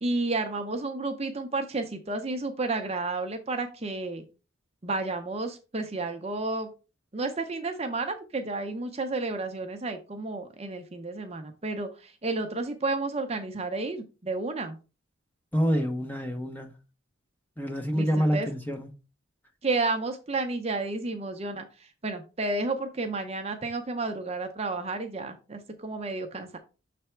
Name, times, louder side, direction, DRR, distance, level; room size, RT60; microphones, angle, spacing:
voice 1, 0.0-4.2 4.8-6.7 7.1-14.8 17.9-18.5 19.6-21.7 22.0-26.6, right 3 dB, 30° right, 0.6 m, -31 dB
voice 2, 15.5-16.7 17.6-18.9, equal, 10° left, 0.8 m, -27 dB
6.7 x 3.4 x 4.4 m
head